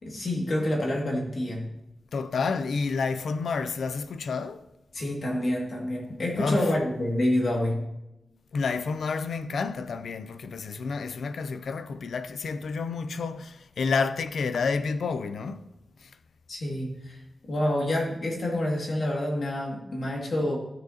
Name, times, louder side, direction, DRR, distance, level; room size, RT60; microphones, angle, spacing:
voice 1, 0.0-1.7 4.9-7.8 16.5-17.2 17.5-20.6, left 1 dB, 55° left, 2.1 m, -27 dB
voice 2, 2.1-4.7 6.3-6.7 8.5-15.7 16.0-16.1, left 4 dB, 85° left, 0.5 m, -29 dB
13.0 x 6.4 x 2.8 m
wide cardioid pair, 145°, 0 cm